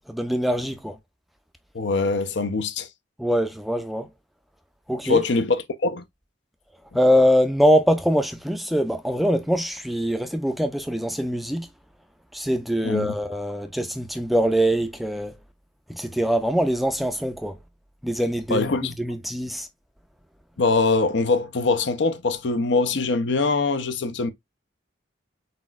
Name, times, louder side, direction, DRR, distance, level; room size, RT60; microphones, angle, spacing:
voice 1, 0.1-0.9 3.2-4.1 4.9-5.2 6.9-11.7 12.3-15.3 15.9-17.6 18.0-19.7, equal, ahead, 0.4 m, -23 dB
voice 2, 1.7-2.9 5.0-6.0 12.8-13.2 18.5-18.9 20.6-24.3, left 3 dB, 65° left, 0.6 m, -23 dB
4.2 x 4.1 x 2.3 m
head